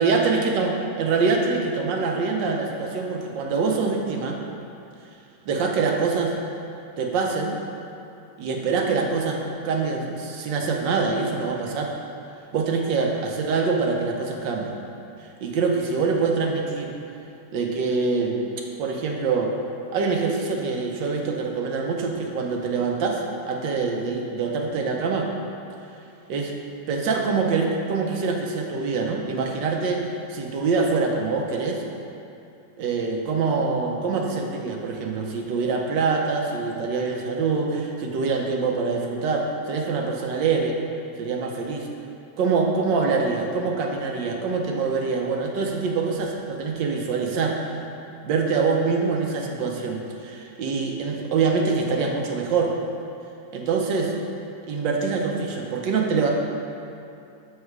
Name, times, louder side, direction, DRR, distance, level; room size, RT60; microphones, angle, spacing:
voice 1, 0.0-4.4 5.5-6.4 7.0-7.6 8.4-9.4 9.6-11.9 12.5-14.8 15.2-16.9 17.5-18.4 18.8-19.5 19.9-25.3 26.3-26.5 26.9-31.8 32.8-40.8 41.2-41.9 42.4-47.8 48.1-52.7 53.5-54.1 54.7-56.3, right 4 dB, 85° right, 1 dB, 1.5 m, -25 dB
6.5 x 5.0 x 4.6 m, 2.7 s
omnidirectional pair, 1.9 m